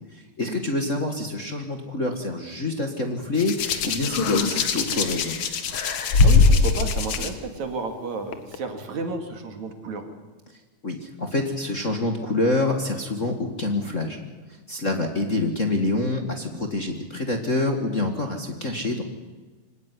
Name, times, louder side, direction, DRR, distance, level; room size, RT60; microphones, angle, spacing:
voice 1, 0.1-5.4 10.8-14.2 14.7-19.0, left 2 dB, 30° left, 3 dB, 1.8 m, -26 dB
Hands, 3.4-7.3 8.3-8.6, left 4 dB, 55° left, 2.3 m, -21 dB
voice 2, 6.2-10.0, right 4 dB, 70° right, 5 dB, 3.7 m, -32 dB
25.5 x 17.5 x 9.9 m, 1.3 s
omnidirectional pair, 3.4 m